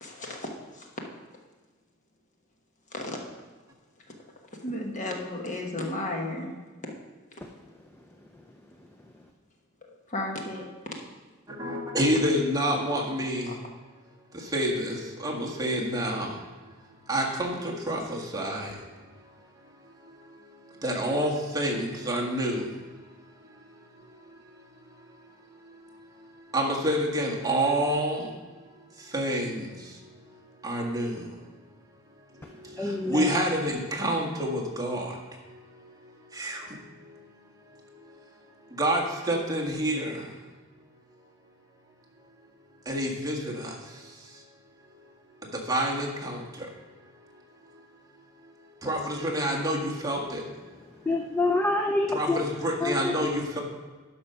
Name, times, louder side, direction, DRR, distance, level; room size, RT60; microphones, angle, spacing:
voice 1, 0.0-0.9 2.9-3.2 4.6-6.5 10.1-10.7, left 1 dB, 35° left, 1 dB, 1.3 m, -33 dB
voice 2, 11.6-13.5 14.5-16.3 17.1-18.7 20.8-22.6 26.5-28.2 29.1-29.7 30.6-31.2 33.1-35.1 36.3-36.6 38.8-40.2 42.9-43.7 45.7-46.4 48.8-50.4 52.1-53.6, equal, 15° right, -2 dB, 1.6 m, -27 dB
voice 3, 32.8-33.2 51.1-52.4 52.8-52.9, left 2 dB, 10° left, 3 dB, 0.5 m, -26 dB
11.5 x 5.3 x 5.7 m, 1.3 s
head